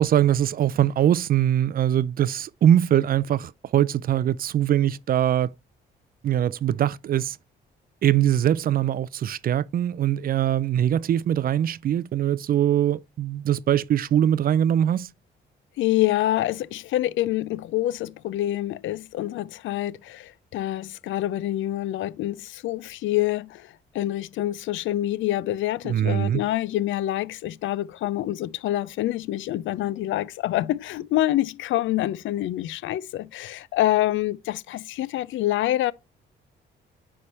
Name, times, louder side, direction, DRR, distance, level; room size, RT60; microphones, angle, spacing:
voice 1, 0.0-5.5 6.2-7.4 8.0-15.1 25.8-26.4, right 10 dB, 45° right, 0.4 m, -22 dB
voice 2, 15.8-35.9, left 14 dB, 75° left, 0.4 m, -26 dB
9.6 x 3.4 x 4.2 m
cardioid pair, 90°, 20 cm